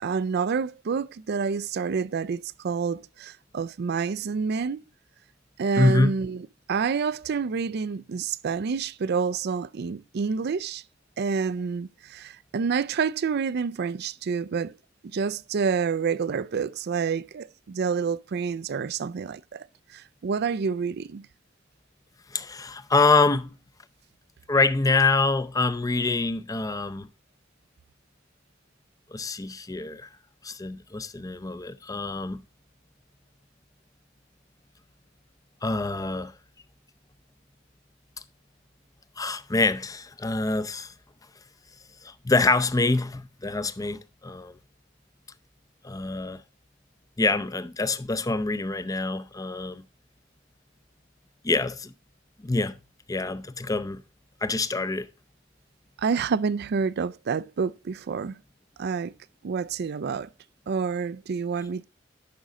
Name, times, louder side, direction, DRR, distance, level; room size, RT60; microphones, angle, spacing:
voice 1, 0.0-4.8 5.6-6.4 6.7-10.8 11.2-14.7 15.1-19.7 19.9-21.2 56.0-58.3 58.8-59.1 59.4-60.3 60.7-61.8, right 5 dB, 55° right, 0.4 m, -28 dB
voice 2, 5.8-6.1 22.3-23.5 24.5-27.1 29.1-30.1 30.4-32.4 35.6-36.3 39.2-40.9 42.0-44.5 45.8-46.4 47.2-49.8 51.4-51.9 52.4-52.8 53.1-54.0 54.4-55.1, left 3 dB, 20° left, 0.6 m, -25 dB
10.5 x 6.2 x 3.6 m
head